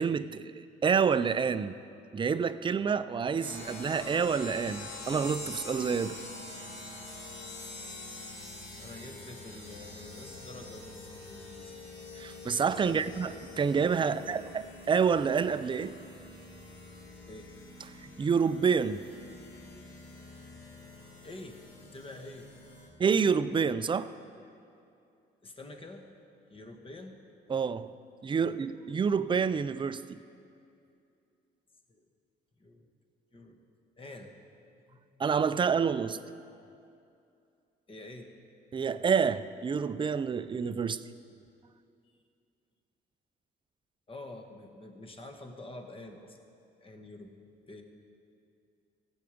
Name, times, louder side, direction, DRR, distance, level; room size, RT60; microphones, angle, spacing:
voice 1, 0.0-1.8 2.1-6.2 12.2-15.9 18.2-19.0 23.0-24.1 27.5-27.9 28.2-30.2 35.2-36.2 38.7-41.0, right 6 dB, 25° right, 0.4 m, -28 dB
sound 1, 3.4-22.9, left 2 dB, 65° left, 2.3 m, -45 dB
voice 2, 8.8-11.7 12.8-13.0 14.0-14.5 17.3-17.5 21.2-22.5 22.8-22.9 25.4-26.0 26.5-27.2 28.4-28.7 31.9-32.0 32.6-32.8 33.3-33.6 34.0-34.3 34.9-35.0 37.9-38.3 44.1-46.4 46.8-47.3 47.7-47.8, left 2 dB, 25° left, 1.3 m, -47 dB
15.5 x 8.1 x 5.0 m
cardioid pair, 90°, 20 cm